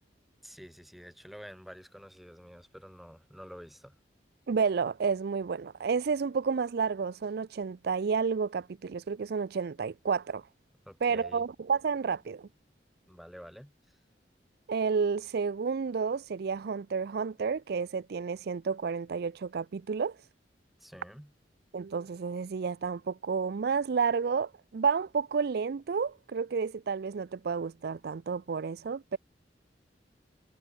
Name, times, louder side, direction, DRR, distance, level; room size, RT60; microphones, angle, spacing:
voice 1, 0.4-4.0 10.9-11.4 13.1-13.7 20.8-21.3, equal, ahead, 7.3 m, -49 dB
voice 2, 4.5-10.4 11.0-12.5 14.7-20.2 21.7-29.2, right 5 dB, 60° right, 0.4 m, -30 dB
head